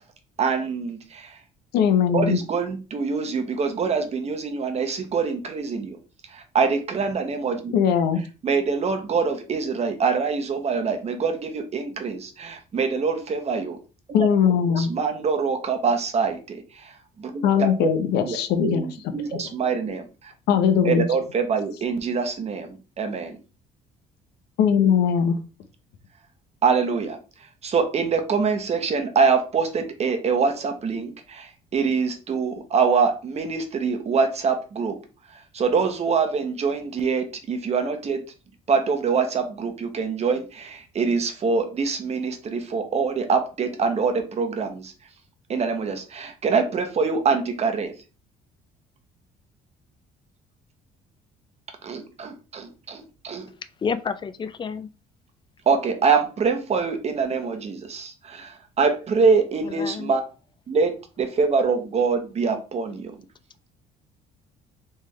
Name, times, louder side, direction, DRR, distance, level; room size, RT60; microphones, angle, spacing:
voice 1, 0.4-1.3 2.1-6.0 6.3-7.7 8.2-13.8 14.1-14.3 14.8-16.6 17.2-17.9 18.2-18.4 18.6-20.1 20.8-22.7 23.0-23.4 26.6-27.2 27.6-35.0 35.5-38.2 38.7-44.9 45.5-47.9 51.8-53.5 55.7-60.2 60.7-63.1, right 5 dB, 40° right, 1.0 m, -24 dB
voice 2, 1.7-2.4 7.7-8.2 14.1-14.9 17.4-19.4 20.5-21.1 24.6-25.4, left 7 dB, 80° left, 0.8 m, -20 dB
voice 3, 53.8-54.9 59.6-60.1, left 6 dB, 30° left, 0.4 m, -29 dB
3.6 x 3.3 x 3.2 m
cardioid pair, 110°, 17 cm